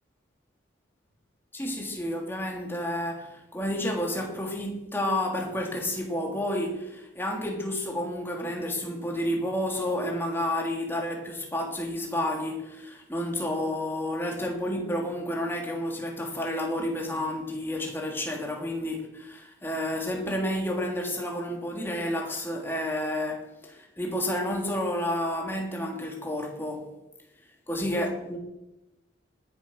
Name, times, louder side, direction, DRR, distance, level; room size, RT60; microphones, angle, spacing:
voice 1, 1.5-26.9 27.7-28.4, left 1 dB, 10° left, 3.2 m, -30 dB
19.0 x 11.0 x 6.5 m
head